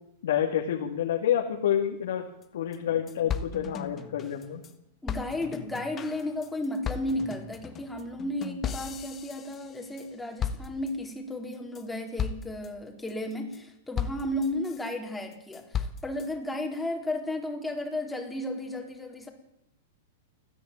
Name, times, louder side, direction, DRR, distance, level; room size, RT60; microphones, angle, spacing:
voice 1, 0.2-2.2 2.5-4.6, left 10 dB, 75° left, 1 dB, 2.8 m, -28 dB
sound 1, 2.4-2.5 2.7-2.8 3.1-4.7 5.1-10.1 10.4-11.1 11.5-11.8 12.2-12.7 13.1-13.6 14.0-14.9 15.3-16.3, left 7 dB, 25° left, 1.5 m, -36 dB
voice 2, 5.0-19.3, left 1 dB, 5° left, 2 dB, 4.1 m, -34 dB
29.0 x 10.0 x 9.2 m, 0.82 s
hypercardioid pair, 130°, 0 cm